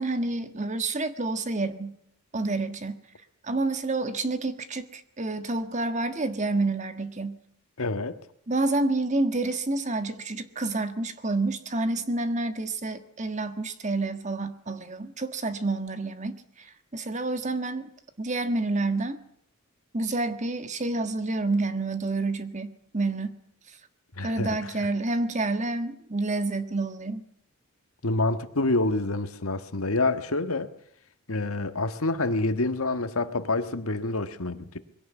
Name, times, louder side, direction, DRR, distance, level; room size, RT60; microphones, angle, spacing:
voice 1, 0.0-1.9 2.3-3.0 3.4-7.4 8.5-16.4 16.9-17.9 18.2-19.2 19.9-23.4 24.2-27.2, right 2 dB, 35° right, 1.5 m, -28 dB
voice 2, 7.8-8.2 24.2-24.7 28.0-30.7 31.3-34.8, left 2 dB, 75° left, 1.6 m, -27 dB
21.5 x 17.5 x 8.3 m
head